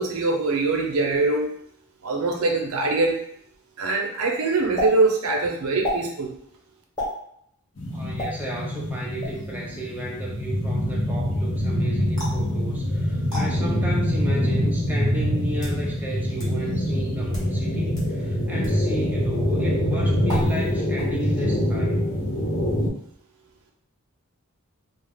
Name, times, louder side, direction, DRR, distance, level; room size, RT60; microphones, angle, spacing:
voice 1, 0.0-1.5 2.0-3.2 3.8-6.3, right 3 dB, 90° right, 1 dB, 0.6 m, -23 dB
sound 1, 4.8-4.9 5.8-6.0 7.0-7.2 8.2-8.3 9.2-9.5 12.2-12.4 13.3-13.4 14.4-14.5 15.3-15.8 16.4-16.5 17.2-17.5 17.9-18.1 18.6-18.8 20.3-20.7 21.0-21.4, left 1 dB, 20° left, 1.0 m, -30 dB
sound 2, 7.8-22.9, equal, 55° left, 0.6 m, -25 dB
voice 2, 7.9-22.0, right 1 dB, 10° right, -4 dB, 0.4 m, -34 dB
2.4 x 2.0 x 3.4 m, 0.70 s
head